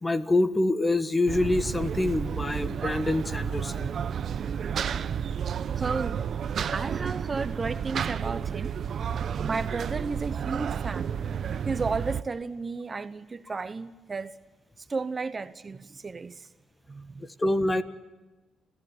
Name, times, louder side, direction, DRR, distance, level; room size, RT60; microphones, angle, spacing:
voice 1, 0.0-3.9 17.4-17.8, left 2 dB, 20° left, 1.5 m, -26 dB
sound 1, 1.3-12.2, right 7 dB, 55° right, 0.8 m, -31 dB
voice 2, 5.7-6.3 6.7-8.8 9.4-11.1 11.6-14.4 14.8-16.5 16.9-17.3, right 4 dB, 30° right, 0.9 m, -33 dB
29.5 x 15.0 x 10.0 m
cardioid pair, 90°, 0 cm